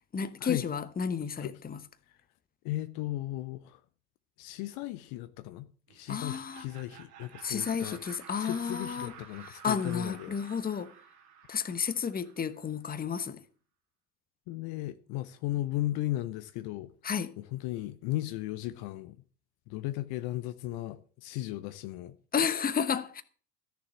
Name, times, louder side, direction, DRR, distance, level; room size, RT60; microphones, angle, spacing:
voice 1, 0.1-1.8 6.1-6.7 7.4-9.1 9.5-10.9 11.5-13.4 17.0-17.3 22.3-23.2, left 6 dB, 20° left, 1.0 m, -32 dB
voice 2, 2.6-3.8 4.4-8.0 8.4-10.3 14.5-16.9 17.4-19.2 19.7-22.2, left 15 dB, 50° left, 0.8 m, -36 dB
Laughter, 5.9-12.7, right 8 dB, 70° right, 2.4 m, -52 dB
13.5 x 6.9 x 7.6 m
hypercardioid pair, 75°, 48 cm